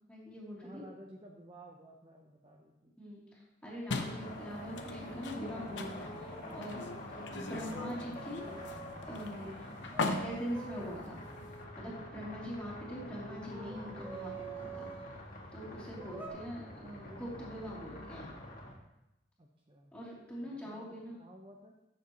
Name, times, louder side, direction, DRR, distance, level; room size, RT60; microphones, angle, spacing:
voice 1, 0.1-0.8 3.0-8.8 9.0-9.6 10.1-11.2 11.8-14.9 15.5-18.3 19.9-21.2, equal, 5° left, -7 dB, 2.9 m, -43 dB
voice 2, 0.6-2.9 15.9-16.4 19.4-19.9 20.4-21.7, right 1 dB, 30° right, 0 dB, 0.7 m, -55 dB
sound 1, 3.9-11.6, left 3 dB, 75° left, 0.8 m, -41 dB
sound 2, 3.9-18.7, left 1 dB, 50° left, 1.9 m, -47 dB
sound 3, 6.1-6.6 7.5-9.1 9.9-15.2 16.0-16.3, right 3 dB, 10° right, 1.0 m, -47 dB
12.5 x 7.4 x 3.0 m, 0.92 s
head